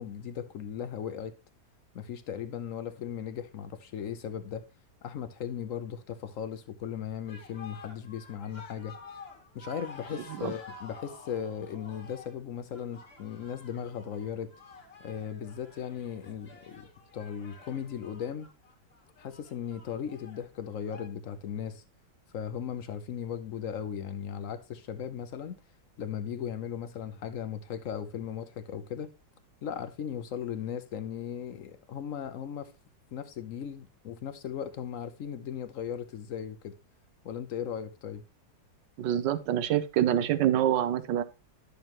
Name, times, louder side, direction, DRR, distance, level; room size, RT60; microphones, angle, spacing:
voice 1, 0.0-1.3 1.9-4.6 5.0-9.0 9.5-14.5 15.0-16.9 17.1-18.5 19.2-21.8 22.3-25.6 26.0-29.1 29.6-32.7 33.1-36.7 37.2-38.2, left 8 dB, 65° left, 0.8 m, -37 dB
sound 1, 7.3-21.1, left 3 dB, 35° left, 1.7 m, -50 dB
voice 2, 39.0-41.2, right 11 dB, 75° right, 1.3 m, -26 dB
11.0 x 6.5 x 2.9 m
omnidirectional pair, 2.0 m